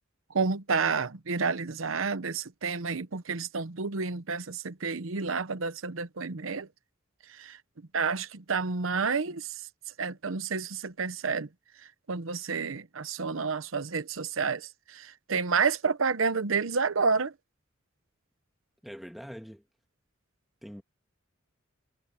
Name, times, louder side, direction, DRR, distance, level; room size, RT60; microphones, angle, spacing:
voice 1, 0.3-6.7 7.3-7.6 7.9-9.5 10.0-11.5 12.1-17.3, right 5 dB, 75° right, 0.9 m, -30 dB
voice 2, 18.8-19.6 20.6-20.8, equal, ahead, 2.1 m, -43 dB
head